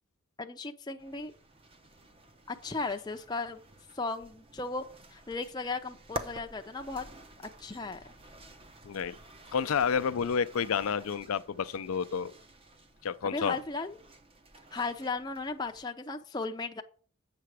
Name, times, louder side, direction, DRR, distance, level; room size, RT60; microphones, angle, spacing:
voice 1, 0.4-1.3 2.5-3.6 3.9-4.8 5.1-7.1 7.6-8.1 13.2-14.0 14.7-16.8, left 3 dB, 20° left, 0.5 m, -36 dB
sound 1, 1.0-15.8, right 1 dB, 25° right, 0.7 m, -49 dB
voice 2, 8.8-9.2 9.5-12.3 13.0-13.6, left 6 dB, 90° left, 0.5 m, -30 dB
7.7 x 6.7 x 4.8 m
head